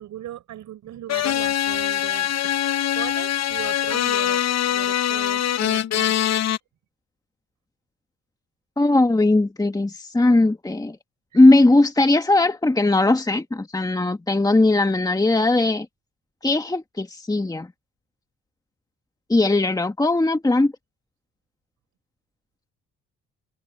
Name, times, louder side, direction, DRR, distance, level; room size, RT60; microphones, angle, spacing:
voice 1, 0.0-2.6 2.9-6.4 11.3-11.4, right 12 dB, 75° right, 4.6 m, -38 dB
sound 1, 1.1-6.6, left 11 dB, 60° left, 1.0 m, -23 dB
voice 2, 8.8-11.0 11.3-15.9 16.4-17.7 19.3-20.7, left 2 dB, 10° left, 1.6 m, -19 dB
cardioid pair, 90°, 30 cm